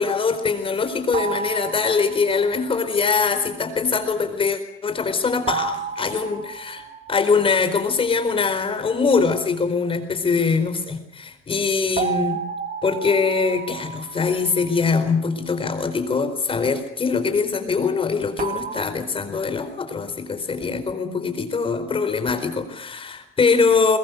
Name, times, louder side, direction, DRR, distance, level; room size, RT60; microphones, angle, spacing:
voice 1, 0.0-12.4 12.8-24.0, left 5 dB, 25° left, 9 dB, 4.5 m, -22 dB
sound 1, 1.1-2.6 5.5-7.9 12.0-15.1 18.4-18.9, right 6 dB, 40° right, 2.3 m, -31 dB
23.0 x 21.5 x 8.1 m, 0.77 s
cardioid pair, 140°, 21 cm